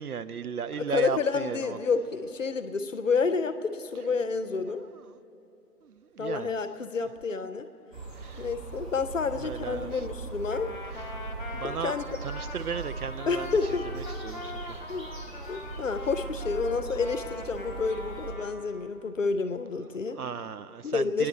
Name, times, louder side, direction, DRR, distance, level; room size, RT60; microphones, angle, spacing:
voice 1, 0.0-1.8 4.8-5.2 5.8-6.5 8.2-8.5 9.4-10.1 10.9-11.1 11.5-13.6 13.8-14.9 20.0-21.3, right 6 dB, 70° right, 13 dB, 0.6 m, -36 dB
voice 2, 0.9-4.8 6.2-7.7 8.4-10.7 11.6-12.0 13.3-13.9 14.9-15.1 15.5-20.2 20.8-21.3, left 4 dB, 55° left, 11 dB, 0.7 m, -29 dB
sound 1, 7.9-18.3, right 4 dB, 30° right, 2.4 m, -40 dB
Trumpet, 10.5-18.6, left 3 dB, 35° left, 1.1 m, -42 dB
24.0 x 9.9 x 4.1 m, 2.9 s
figure-of-eight pair, 145°, 47 cm